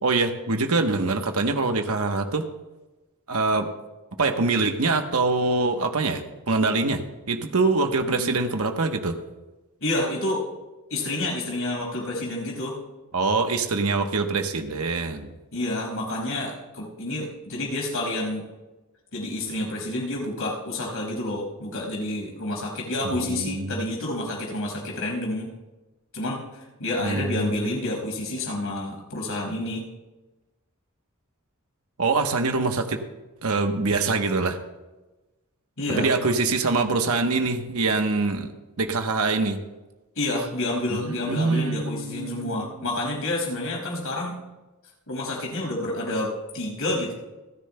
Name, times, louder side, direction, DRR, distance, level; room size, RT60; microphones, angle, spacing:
voice 1, 0.0-2.4 3.3-3.7 4.2-7.0 7.3-9.2 13.1-15.3 23.0-23.8 27.0-27.5 32.0-33.0 33.4-34.6 35.9-38.5 38.8-39.6 40.9-42.7, right 3 dB, 80° right, 5 dB, 1.0 m, -24 dB
voice 2, 9.8-10.4 10.9-12.8 15.5-18.4 19.1-25.5 26.1-29.8 35.8-36.1 40.2-44.3 45.1-47.1, left 1 dB, 75° left, -1 dB, 5.5 m, -29 dB
30.0 x 10.5 x 2.2 m, 1.1 s
head